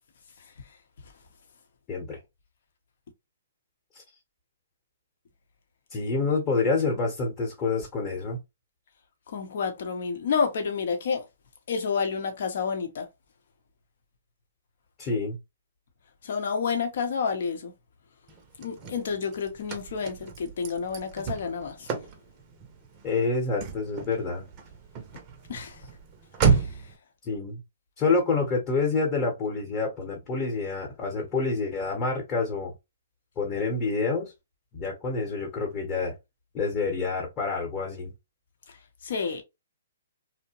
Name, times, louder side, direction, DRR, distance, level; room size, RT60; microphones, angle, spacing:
voice 1, 0.4-0.8 1.0-1.1 9.3-11.2 11.7-13.1 16.2-17.7 18.6-22.1 25.5-25.9 26.5-26.9 38.7-39.4, left 5 dB, 60° left, 0.8 m, -30 dB
voice 2, 1.9-2.2 3.9-4.0 5.9-8.4 15.0-15.4 23.0-24.5 27.2-27.6 28.0-32.7 33.4-34.3 34.7-36.1 36.5-38.1, left 4 dB, 25° left, 0.9 m, -27 dB
Car / Slam, 18.3-27.0, right 6 dB, 30° right, 0.6 m, -31 dB
2.7 x 2.1 x 2.8 m
hypercardioid pair, 140°, 0 cm